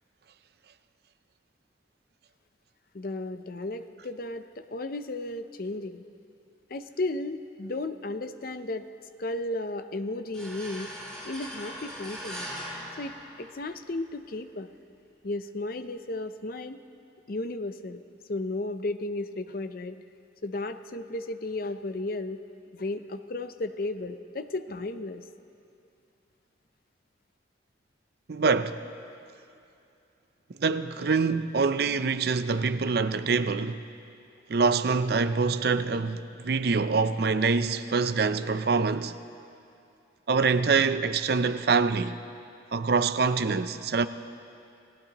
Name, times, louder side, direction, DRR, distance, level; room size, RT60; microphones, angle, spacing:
voice 1, 2.9-6.0 6.7-8.9 9.2-11.0 11.2-12.5 13.0-14.7 15.2-16.8 17.3-18.0 18.3-20.0 20.4-22.4 22.7-25.2, left 2 dB, 50° left, 0.6 m, -34 dB
sound 1, 10.3-13.9, equal, 5° left, 3.7 m, -40 dB
voice 2, 28.3-28.8 30.6-33.8 34.5-39.2 40.3-42.2 42.7-44.1, right 4 dB, 55° right, 0.5 m, -25 dB
29.0 x 16.5 x 3.0 m
head